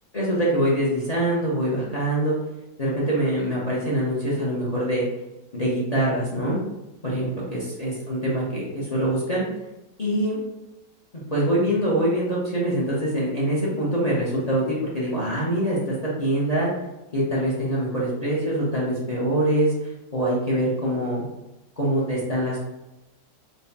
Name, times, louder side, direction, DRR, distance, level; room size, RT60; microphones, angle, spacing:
voice 1, 0.1-2.4 2.8-5.1 5.5-6.6 7.0-9.4 10.0-10.4 11.1-16.7 17.1-19.7 20.1-21.3 21.8-22.6, right 1 dB, 40° left, -6 dB, 0.5 m, -24 dB
4.6 x 2.3 x 4.0 m, 0.97 s
omnidirectional pair, 2.0 m